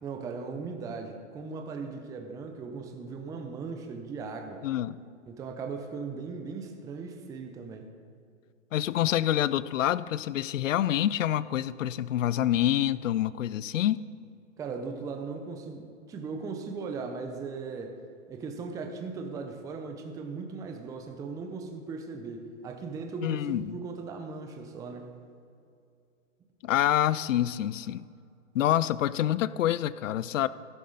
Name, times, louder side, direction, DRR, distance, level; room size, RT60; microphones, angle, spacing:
voice 1, 0.0-4.6 5.3-7.9 14.6-18.0 18.3-25.1, right 4 dB, 10° right, 4 dB, 0.6 m, -38 dB
voice 2, 4.6-5.0 8.7-14.0 23.2-23.8 26.6-28.1 28.5-30.5, left 12 dB, 75° left, 18 dB, 0.6 m, -27 dB
13.0 x 11.0 x 3.9 m, 2.4 s
hypercardioid pair, 135°, 39 cm